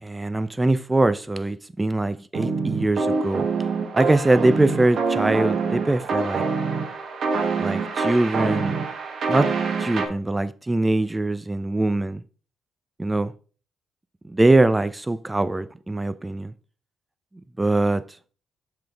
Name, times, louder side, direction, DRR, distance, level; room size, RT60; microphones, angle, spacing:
voice 1, 0.0-3.5 3.9-6.4 7.6-8.8 9.3-9.5 9.8-12.2 13.0-13.3 14.3-16.5 17.6-18.0, right 2 dB, 15° right, 0.5 m, -22 dB
sound 1, 2.3-10.1, right 4 dB, 55° right, 1.3 m, -25 dB
5.8 x 5.3 x 3.4 m
cardioid pair, 90°, 0 cm